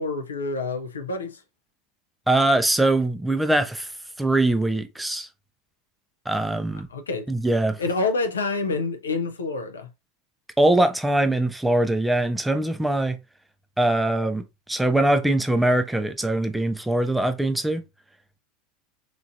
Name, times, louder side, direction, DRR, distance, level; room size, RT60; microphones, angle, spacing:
voice 1, 0.0-1.4 6.9-7.3 7.8-9.9, left 3 dB, 85° left, 0.4 m, -27 dB
voice 2, 2.3-3.9 4.2-5.3 6.3-6.9 7.3-7.8 10.6-13.2 13.8-17.8, right 1 dB, 5° right, 0.4 m, -22 dB
3.0 x 2.4 x 2.6 m
hypercardioid pair, 80°, 0 cm